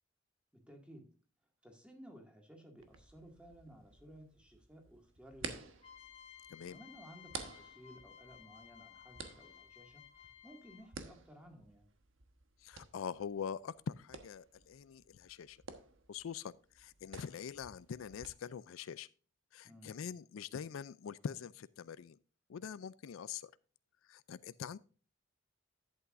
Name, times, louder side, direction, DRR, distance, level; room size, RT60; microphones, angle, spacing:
voice 1, 0.5-1.1 1.6-5.7 6.7-11.9 19.6-19.9, equal, 5° right, 2.1 m, -57 dB
sound 1, 2.8-18.3, right 5 dB, 75° right, 1.2 m, -52 dB
sound 2, 5.8-11.1, left 9 dB, 30° left, 1.3 m, -57 dB
voice 2, 12.6-15.6 16.1-19.1 19.5-22.2 22.5-23.5 24.1-24.8, left 7 dB, 90° left, 0.4 m, -44 dB
11.0 x 8.5 x 2.5 m
head